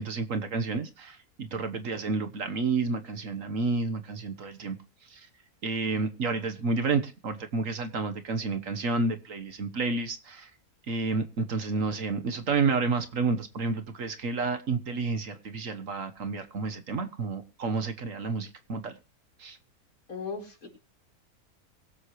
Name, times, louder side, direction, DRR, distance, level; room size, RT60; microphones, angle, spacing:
voice 1, 0.0-4.8 5.0-5.3 5.6-10.5 10.9-19.0 19.4-19.6, right 4 dB, 60° right, 1.6 m, -30 dB
voice 2, 20.1-20.7, left 5 dB, 65° left, 4.8 m, -37 dB
23.0 x 8.2 x 3.1 m
omnidirectional pair, 1.6 m